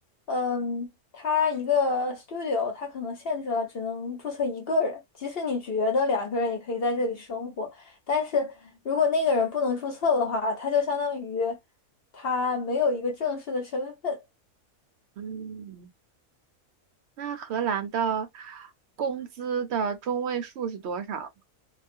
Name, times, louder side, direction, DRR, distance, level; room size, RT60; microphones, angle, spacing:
voice 1, 0.3-0.9 1.1-8.5 8.8-11.6 12.1-14.2, left 4 dB, 50° left, 0.9 m, -27 dB
voice 2, 15.2-15.9 17.2-18.7 19.0-21.3, right 7 dB, 65° right, 0.7 m, -30 dB
2.3 x 2.3 x 2.4 m
omnidirectional pair, 1.5 m